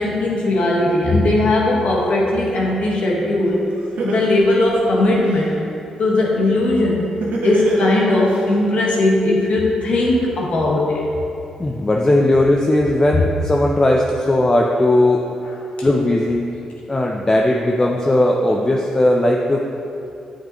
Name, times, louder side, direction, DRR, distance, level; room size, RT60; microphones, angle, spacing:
voice 1, 0.0-3.6 4.0-5.6 6.0-7.1 7.4-11.0 15.8-15.9, left 2 dB, 65° left, -3 dB, 1.3 m, -18 dB
Laughter, 3.4-3.5 4.0-5.4 7.2-8.4, right 2 dB, 75° right, 1.2 m, -23 dB
voice 2, 11.6-15.2 15.8-16.5 16.9-19.7, left 1 dB, 25° left, 0 dB, 0.6 m, -17 dB
7.5 x 6.8 x 3.0 m, 2.6 s
supercardioid pair, 55°, 2 cm